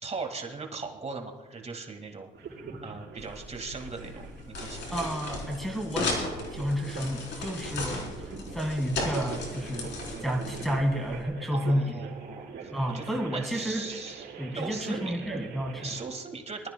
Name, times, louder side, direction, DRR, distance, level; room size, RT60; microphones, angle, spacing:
voice 1, 0.0-2.3 2.8-5.0 11.5-15.1 15.8-16.7, right 4 dB, 35° right, 3 dB, 1.9 m, -39 dB
sound 1, 2.3-16.0, right 5 dB, 60° right, 3.7 m, -43 dB
sound 2, 3.2-11.2, left 2 dB, 65° left, 3.8 m, -36 dB
voice 2, 4.9-6.2 6.5-9.9 10.2-11.9 12.7-13.9 14.4-15.9, equal, ahead, 1 dB, 1.7 m, -31 dB
24.0 x 13.0 x 2.2 m, 1.2 s
cardioid pair, 90°, 20 cm